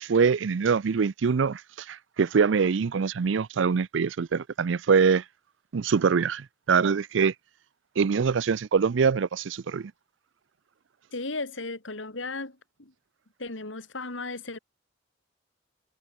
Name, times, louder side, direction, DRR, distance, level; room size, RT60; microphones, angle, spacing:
voice 1, 0.0-5.2 5.7-7.3 8.0-9.9, right 5 dB, 75° right, 0.5 m, -24 dB
voice 2, 11.1-12.9 13.4-14.6, left 3 dB, 85° left, 3.0 m, -35 dB
head